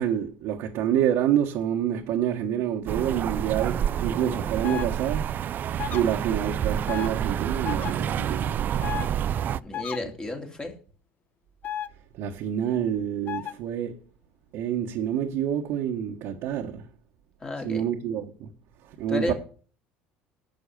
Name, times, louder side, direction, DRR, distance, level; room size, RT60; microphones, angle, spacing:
voice 1, 0.0-5.3 5.9-8.5 12.1-14.0 14.5-16.8 17.6-18.5 18.9-19.3, right 10 dB, 70° right, 1.3 m, -27 dB
sound 1, 2.9-9.6, right 9 dB, 45° right, 0.4 m, -28 dB
sound 2, 4.6-4.9 5.8-6.0 6.9-7.1 7.6-7.9 8.8-9.1 9.7-10.0 11.6-11.9 13.3-13.5, left 11 dB, 45° left, 0.9 m, -32 dB
voice 2, 9.6-10.7 17.4-17.8 19.1-19.3, left 2 dB, 20° left, 2.8 m, -32 dB
10.5 x 6.4 x 6.7 m
supercardioid pair, 95°, 4 cm